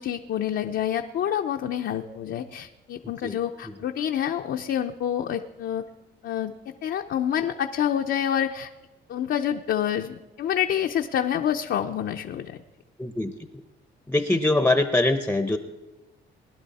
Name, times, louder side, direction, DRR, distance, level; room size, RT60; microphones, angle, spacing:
voice 1, 0.0-5.9 6.2-8.7 9.1-12.6, left 10 dB, 65° left, 3 dB, 0.7 m, -27 dB
voice 2, 13.0-13.3 14.1-15.6, left 2 dB, 10° left, 8 dB, 0.8 m, -22 dB
20.5 x 11.0 x 4.2 m, 1.1 s
cardioid pair, 90°, 20 cm